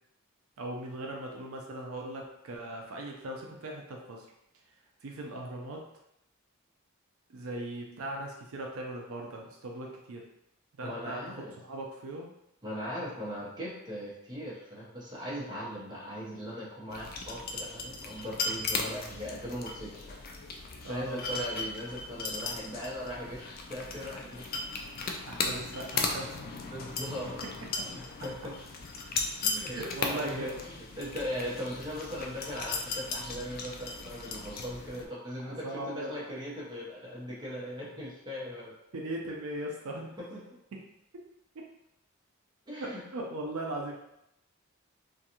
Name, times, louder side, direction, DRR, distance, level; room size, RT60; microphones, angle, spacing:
voice 1, 0.6-4.3 5.0-5.8 7.3-10.2 10.8-12.3 20.8-21.2 25.3-26.7 27.8-27.9 29.6-30.6 35.4-36.3 38.9-40.2 40.7-40.8 41.6-41.7 42.8-43.9, right 1 dB, 75° right, 0 dB, 0.5 m, -39 dB
voice 2, 10.8-11.5 12.6-20.3 20.9-24.5 26.7-27.4 27.8-28.5 29.4-29.8 30.1-38.7 40.2-40.4 42.7-43.0, equal, 20° right, -6 dB, 0.7 m, -39 dB
sound 1, 16.9-35.1, left 4 dB, 45° left, 0.3 m, -37 dB
2.5 x 2.3 x 2.8 m, 0.82 s
head